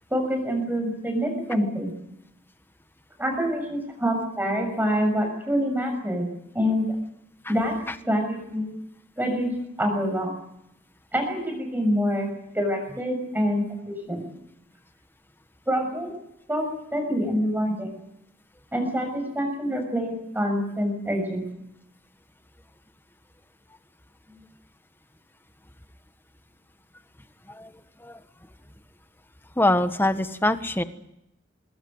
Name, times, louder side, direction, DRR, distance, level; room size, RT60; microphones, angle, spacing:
voice 1, 0.1-1.9 3.2-6.3 6.5-6.9 7.5-7.8 8.0-8.7 9.2-9.5 9.8-10.3 11.1-12.3 12.5-14.3 15.7-16.1 16.5-17.9 18.7-21.4, equal, 10° right, 4 dB, 6.5 m, -26 dB
voice 2, 29.6-30.8, left 1 dB, 10° left, 10 dB, 1.3 m, -24 dB
25.0 x 21.5 x 8.0 m, 0.82 s
head